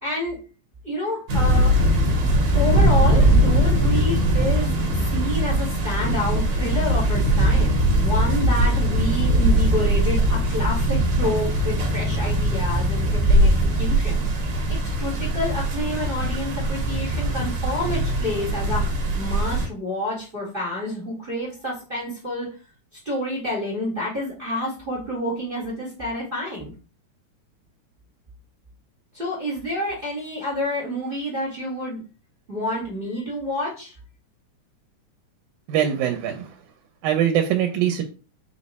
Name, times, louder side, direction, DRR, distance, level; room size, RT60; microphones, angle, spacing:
voice 1, 0.0-0.4 0.8-1.7 2.5-4.7 5.1-14.3 15.0-18.8 19.1-22.5 23.0-26.7 29.1-32.0 32.5-33.9, left 1 dB, 40° right, -4 dB, 0.7 m, -28 dB
sound 1, 1.3-19.7, right 1 dB, 60° right, 1.5 m, -20 dB
voice 2, 35.7-36.5 37.0-38.0, right 10 dB, 85° right, 4 dB, 2.0 m, -22 dB
5.0 x 2.1 x 4.0 m, 0.34 s
omnidirectional pair, 3.4 m